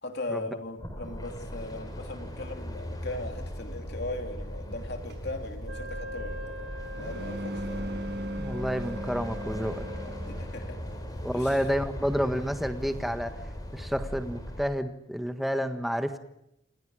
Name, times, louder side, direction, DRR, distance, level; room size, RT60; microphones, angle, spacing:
voice 1, 0.0-7.9 10.3-10.8 11.3-11.7, left 2 dB, 55° left, 5 dB, 3.1 m, -39 dB
sound 1, 0.8-14.7, equal, 20° left, 5.0 m, -39 dB
sound 2, 5.1-10.7, equal, 55° right, 6.0 m, -39 dB
Wind instrument woodwind instrument, 5.6-10.4, right 1 dB, 70° right, 7.5 m, -42 dB
voice 2, 8.4-9.9 11.2-13.3 13.7-16.2, equal, ahead, 7 dB, 1.5 m, -29 dB
27.5 x 27.5 x 5.0 m, 0.81 s
head